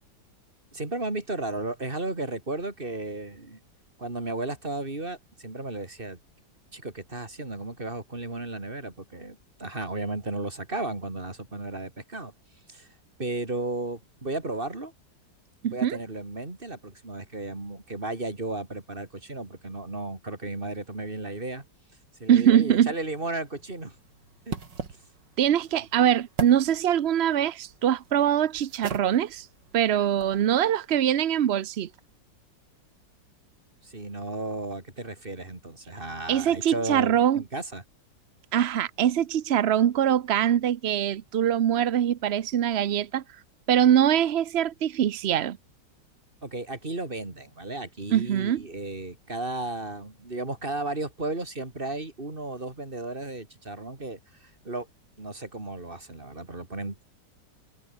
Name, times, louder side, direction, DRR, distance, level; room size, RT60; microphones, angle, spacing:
voice 1, 0.7-3.6 4.0-6.2 6.7-12.3 12.7-12.9 13.2-14.9 15.7-21.6 22.2-24.0 24.5-24.6 25.5-25.7 33.8-37.8 46.4-54.9 55.2-57.0, right 2 dB, 30° right, 3.8 m, -34 dB
voice 2, 15.6-16.0 22.3-22.9 25.4-29.5 29.7-31.9 36.3-37.4 38.5-43.2 43.7-45.6 48.1-48.6, right 10 dB, 60° right, 0.7 m, -23 dB
sound 1, 22.7-30.4, right 5 dB, 80° right, 3.5 m, -41 dB
omnidirectional pair, 1.9 m